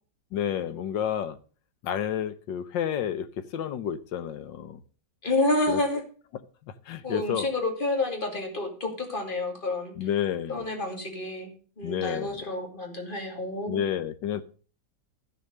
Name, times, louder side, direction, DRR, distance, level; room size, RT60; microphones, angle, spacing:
voice 1, 0.3-1.4 1.8-3.3 3.5-4.8 5.7-5.8 6.9-7.5 10.0-10.6 11.8-12.4 13.7-14.4, left 9 dB, 85° left, 1.7 m, -30 dB
voice 2, 5.2-6.0 7.0-10.1 10.5-13.8, left 2 dB, 30° left, 2.9 m, -29 dB
13.5 x 6.6 x 6.7 m
omnidirectional pair, 1.9 m